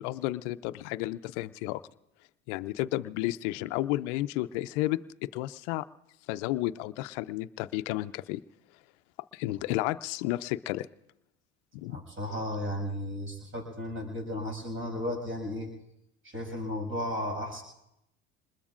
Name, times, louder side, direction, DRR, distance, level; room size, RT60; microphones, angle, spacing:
voice 1, 0.0-1.8 2.5-5.8 6.3-8.4 9.3-10.9 11.7-12.0, left 17 dB, 75° left, 13 dB, 0.5 m, -32 dB
voice 2, 11.9-15.7 16.2-17.6, left 1 dB, 35° right, 1 dB, 6.6 m, -34 dB
26.5 x 21.0 x 2.5 m, 0.83 s
hypercardioid pair, 75°, 36 cm